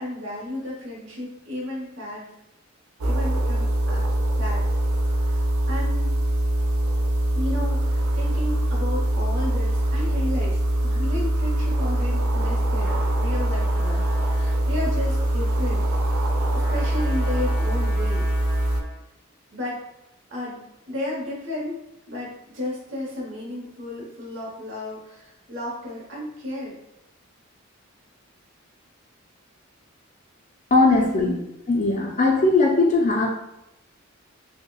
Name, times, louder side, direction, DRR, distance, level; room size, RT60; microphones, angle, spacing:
voice 1, 0.0-2.3 3.0-4.7 5.2-5.4 5.7-6.1 7.3-16.2 16.5-18.3 19.5-19.8 20.3-20.6 20.9-21.8 22.1-26.8 30.9-31.3, left 1 dB, 60° right, -4 dB, 0.9 m, -33 dB
sound 1, 3.0-18.8, right 1 dB, 80° right, 0.4 m, -23 dB
Trumpet, 12.8-19.1, left 1 dB, 15° right, 1.4 m, -42 dB
voice 2, 30.7-31.3 31.7-33.3, left 3 dB, 35° left, 0 dB, 0.4 m, -19 dB
5.4 x 2.1 x 2.3 m, 0.86 s
head